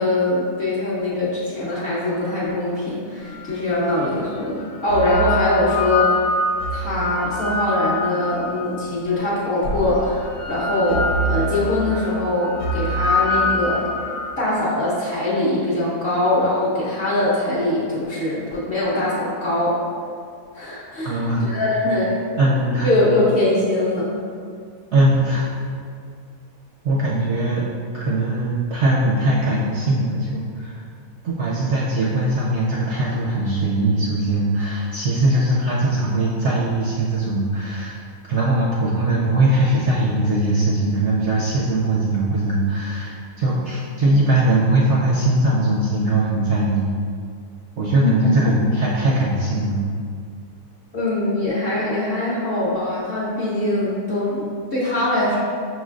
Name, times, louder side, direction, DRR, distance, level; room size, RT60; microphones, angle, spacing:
voice 1, 0.0-6.2 6.7-13.9 14.4-19.8 20.5-22.2 22.8-24.1 47.9-48.1 50.9-55.4, left 1 dB, 50° left, -7 dB, 0.8 m, -22 dB
sound 1, 3.6-3.7 4.6-8.9 9.6-14.3, left 2 dB, 75° left, 1.0 m, -24 dB
voice 2, 21.0-21.5 22.4-22.9 24.9-25.5 26.8-27.6 27.9-30.8 31.2-38.0 38.3-46.9 47.8-49.8, right 1 dB, 70° right, -5 dB, 0.7 m, -20 dB
5.4 x 3.1 x 2.4 m, 2.2 s
omnidirectional pair, 1.6 m